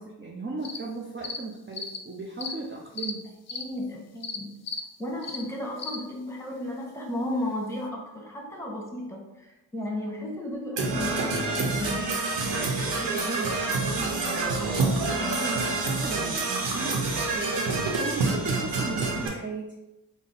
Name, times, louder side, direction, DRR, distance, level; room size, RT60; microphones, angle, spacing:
voice 1, 0.0-3.3 12.7-19.8, right 3 dB, 25° right, -2 dB, 0.6 m, -37 dB
sound 1, 0.6-0.8 1.2-1.4 1.7-2.0 2.4-2.5 3.0-3.1 3.5-3.6 4.2-4.4 4.6-4.8 5.2-5.4 5.8-6.0, left 5 dB, 35° left, 0.5 m, -34 dB
voice 2, 3.5-4.5 5.0-12.2, left 1 dB, 5° left, -1 dB, 1.2 m, -34 dB
Percussion / Brass instrument, 10.8-19.3, right 3 dB, 70° right, 0.8 m, -27 dB
3.8 x 2.0 x 3.9 m, 0.98 s
supercardioid pair, 40°, 46 cm